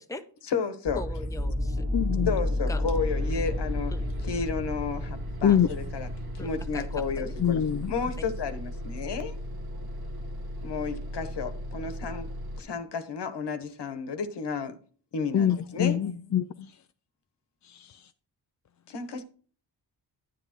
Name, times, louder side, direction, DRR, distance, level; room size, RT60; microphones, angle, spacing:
voice 1, 0.4-1.0 2.3-3.9 4.2-6.1 6.3-7.6 7.9-9.3 10.6-12.3 12.6-14.8 15.1-16.3 18.9-19.2, left 5 dB, 70° left, 1.3 m, -32 dB
voice 2, 0.9-1.9 2.7-2.8 3.9-4.1 5.5-5.6 6.4-6.9 7.2-7.3, left 2 dB, 10° left, 0.8 m, -39 dB
sound 1, 0.9-12.8, left 1 dB, 20° right, 1.6 m, -34 dB
voice 3, 1.9-2.3 5.4-5.7 7.4-7.9 15.3-16.7 17.6-18.1, left 9 dB, 45° left, 0.5 m, -25 dB
Bus, 2.9-12.6, equal, 55° right, 1.5 m, -37 dB
9.9 x 9.4 x 3.0 m
cardioid pair, 70°, 43 cm